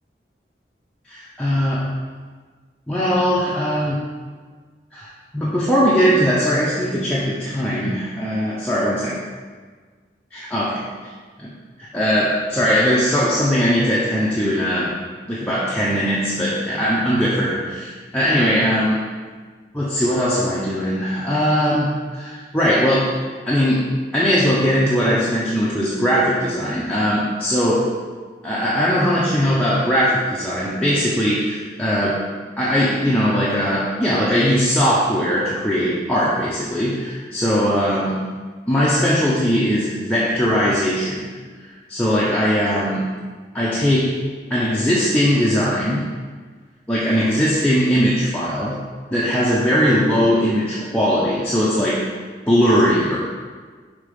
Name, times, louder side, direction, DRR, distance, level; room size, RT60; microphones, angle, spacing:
voice 1, 1.1-1.9 2.9-4.0 4.9-5.1 5.3-9.2 10.3-10.8 11.4-11.5 11.8-15.0 15.3-19.0 19.7-23.2 23.5-27.9 28.4-32.2 32.6-38.2 38.7-41.4 41.9-43.1 43.5-44.2 44.5-46.1 46.9-48.8 49.1-52.1 52.5-53.2, equal, 5° left, -8 dB, 0.6 m, -20 dB
5.4 x 3.6 x 5.1 m, 1.5 s
head